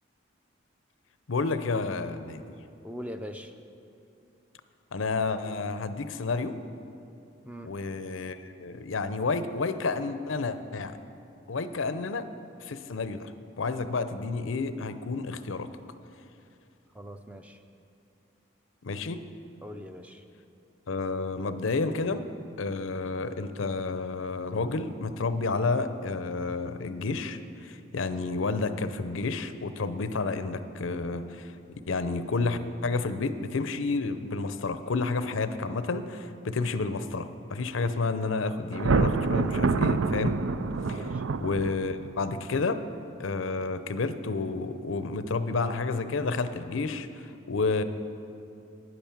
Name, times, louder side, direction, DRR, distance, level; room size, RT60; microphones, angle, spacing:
voice 1, 1.3-2.4 4.9-6.5 7.6-11.0 11.5-12.3 12.6-13.3 13.6-15.7 18.8-19.2 20.9-22.3 22.6-40.4 40.9-41.1 41.4-42.8 43.2-47.1 47.5-47.8, left 3 dB, 85° left, 11 dB, 0.6 m, -30 dB
voice 2, 2.8-3.5 7.4-7.7 16.9-17.6 19.6-20.2 40.9-41.2, equal, 5° right, 6 dB, 0.5 m, -41 dB
Thunder, 38.7-42.1, right 4 dB, 80° right, 0.5 m, -26 dB
10.5 x 9.7 x 7.2 m, 2.6 s
head